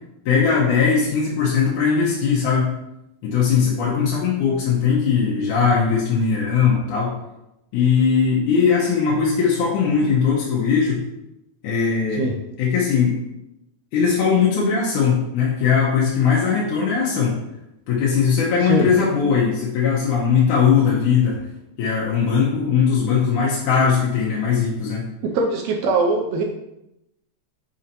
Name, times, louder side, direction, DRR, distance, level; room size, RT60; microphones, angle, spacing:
voice 1, 0.3-2.7 3.2-7.1 7.7-11.0 11.6-12.2 12.6-13.2 13.9-17.4 17.9-21.4 21.8-25.1, left 6 dB, 85° left, -5 dB, 2.4 m, -19 dB
voice 2, 25.2-26.4, right 3 dB, 80° right, 2 dB, 1.8 m, -21 dB
6.3 x 2.9 x 5.3 m, 0.88 s
omnidirectional pair, 3.5 m